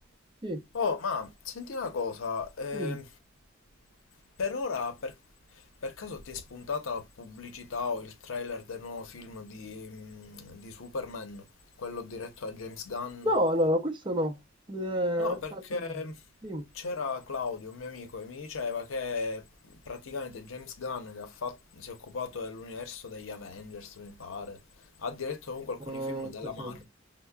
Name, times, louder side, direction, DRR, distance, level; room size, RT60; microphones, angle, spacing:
voice 1, 0.7-3.1 4.4-5.1 5.8-11.4 11.8-13.3 15.2-16.2 16.7-24.6 25.0-26.8, left 4 dB, 85° left, 0.6 m, -36 dB
voice 2, 13.2-14.4 14.7-15.6 16.4-16.6 25.9-26.8, equal, 25° right, 0.6 m, -29 dB
5.4 x 2.0 x 2.2 m
head